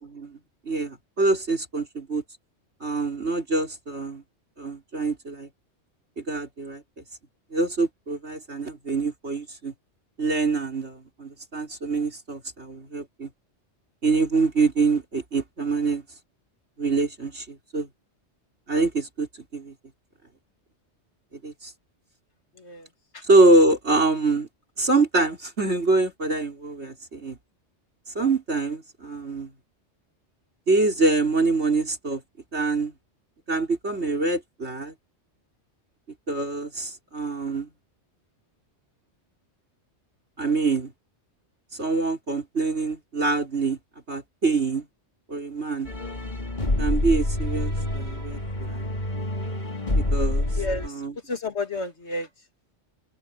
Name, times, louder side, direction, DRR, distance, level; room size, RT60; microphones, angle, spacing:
voice 1, 0.6-2.2 2.8-4.2 4.6-5.5 6.2-6.8 7.5-9.7 10.2-13.3 14.0-16.0 16.8-17.9 18.7-19.7 21.4-21.7 23.3-24.5 24.8-27.4 28.1-29.5 30.7-32.2 32.5-32.9 33.5-34.9 36.3-37.7 40.4-40.9 41.8-43.8 44.1-44.8 45.3-45.9 46.8-48.8 49.9-50.4 50.8-51.1, right 3 dB, 65° right, 4.9 m, -25 dB
voice 2, 22.6-22.9 23.1-23.2 50.6-52.3, left 2 dB, 70° left, 2.3 m, -31 dB
sound 1, 45.9-50.9, left 1 dB, 40° left, 2.8 m, -27 dB
omnidirectional pair, 1.2 m